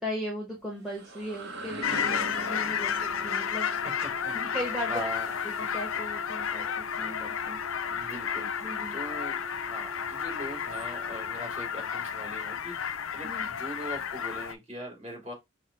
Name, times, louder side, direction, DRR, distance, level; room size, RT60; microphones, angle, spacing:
voice 1, 0.0-3.7 4.3-5.0 5.4-7.6 8.6-8.9 13.2-13.5, equal, ahead, 1.1 m, -37 dB
sound 1, 0.6-6.3, right 1 dB, 50° right, 0.9 m, -41 dB
sound 2, 1.8-14.5, left 8 dB, 70° left, 0.5 m, -32 dB
Wind instrument woodwind instrument, 2.7-12.0, right 4 dB, 80° right, 0.8 m, -48 dB
voice 2, 4.0-4.4 4.7-5.3 7.9-9.4 9.7-15.3, right 1 dB, 30° right, 3.0 m, -41 dB
5.6 x 2.2 x 3.3 m
head